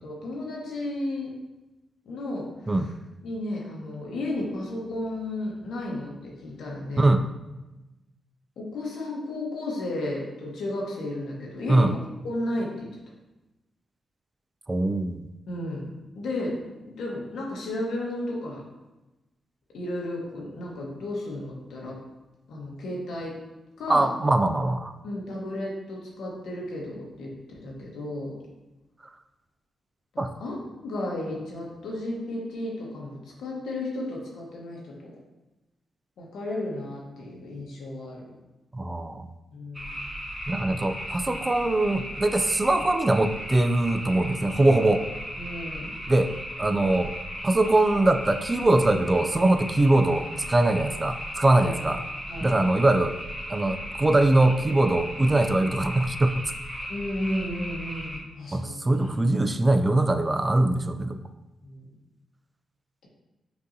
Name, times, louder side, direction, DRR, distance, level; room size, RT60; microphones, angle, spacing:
voice 1, 0.0-1.3 2.0-2.9 3.2-7.1 8.6-12.9 15.5-15.9 16.1-16.6 16.9-18.6 19.7-22.0 22.5-23.4 23.8-24.1 25.0-28.4 30.1-30.6 30.8-35.1 36.2-38.3 39.5-40.1 45.4-45.9 51.6-51.7 52.3-52.6 56.9-59.1 61.6-61.9, left 1 dB, 80° left, -2 dB, 1.1 m, -33 dB
voice 2, 14.7-15.3 23.9-24.9 30.2-30.3 38.7-39.2 40.5-45.0 46.1-46.3 46.6-47.1 47.4-52.0 52.4-53.1 53.5-56.3 58.5-61.2, right 2 dB, 25° right, 8 dB, 0.3 m, -22 dB
sound 1, 39.7-58.2, equal, 5° right, 1.0 m, -36 dB
6.0 x 2.6 x 2.6 m, 1.0 s
cardioid pair, 75°, 0 cm